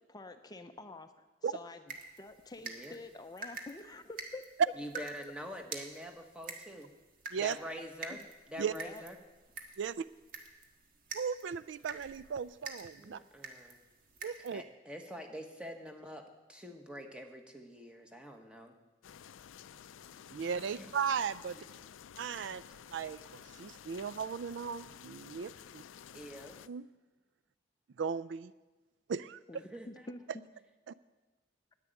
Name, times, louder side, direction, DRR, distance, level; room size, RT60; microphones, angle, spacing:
voice 1, 0.1-1.8 2.2-4.4 8.1-8.2 8.7-9.0 29.5-30.4, left 2 dB, 20° left, 8 dB, 0.6 m, -48 dB
sound 1, 1.9-14.6, right 4 dB, 50° right, 1.5 m, -48 dB
voice 2, 2.6-3.0 4.8-6.9 7.4-9.2 13.0-13.8 14.5-18.7 20.7-20.9 22.3-22.5 26.1-26.6 29.7-30.1, equal, 5° right, 4 dB, 1.3 m, -46 dB
voice 3, 11.1-13.2 14.2-14.6 20.3-21.6 22.2-22.6 22.9-25.8 26.7-26.8 28.0-28.5 29.1-29.4 30.9-31.0, right 6 dB, 70° right, 17 dB, 0.4 m, -36 dB
sound 2, 19.0-26.7, left 8 dB, 90° left, 0.4 m, -52 dB
10.5 x 8.9 x 9.5 m, 1.2 s
head